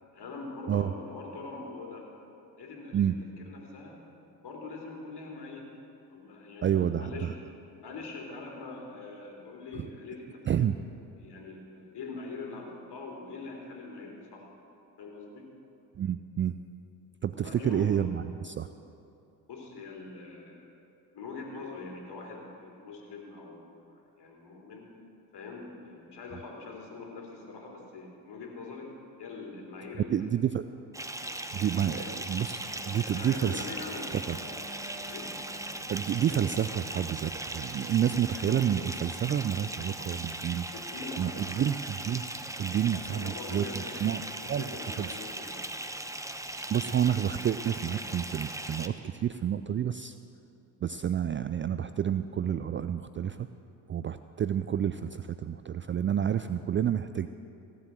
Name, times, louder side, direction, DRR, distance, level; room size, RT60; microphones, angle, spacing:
voice 1, 0.1-2.1 2.6-4.0 4.4-5.7 6.1-7.4 7.8-10.7 11.2-14.5 15.0-15.5 17.4-18.0 19.5-20.6 21.1-24.9 25.3-28.9 29.2-30.3 31.9-32.2 33.1-34.2 34.5-34.6 35.1-35.4 40.7-41.7 42.8-44.0 44.4-45.6, left 3 dB, 55° left, 1 dB, 3.4 m, -43 dB
voice 2, 6.6-7.3 10.5-10.7 16.0-16.5 17.2-18.7 30.1-30.6 31.2-33.7 34.1-34.4 35.9-40.7 41.2-41.7 42.1-42.2 42.6-44.2 44.5-44.7 45.0-45.2 46.7-50.1 50.8-53.5 53.9-57.3, right 9 dB, 30° right, 11 dB, 0.3 m, -29 dB
Bathtub (filling or washing) / Fill (with liquid), 30.9-48.9, right 1 dB, 5° right, 0.9 m, -39 dB
sound 1, 31.2-38.6, equal, 60° right, 2.5 m, -49 dB
16.5 x 8.0 x 7.6 m, 2.7 s
hypercardioid pair, 55°, 49 cm